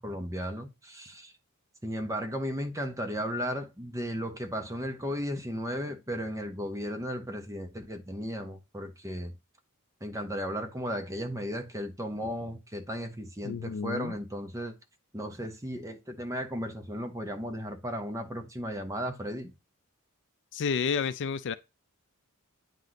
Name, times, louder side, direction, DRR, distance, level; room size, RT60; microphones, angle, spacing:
voice 1, 0.0-1.3 1.8-9.3 10.0-14.7 15.1-19.5, equal, 15° right, 0.9 m, -35 dB
voice 2, 13.4-14.1 20.5-21.5, left 6 dB, 55° left, 0.4 m, -30 dB
9.0 x 3.1 x 4.0 m
head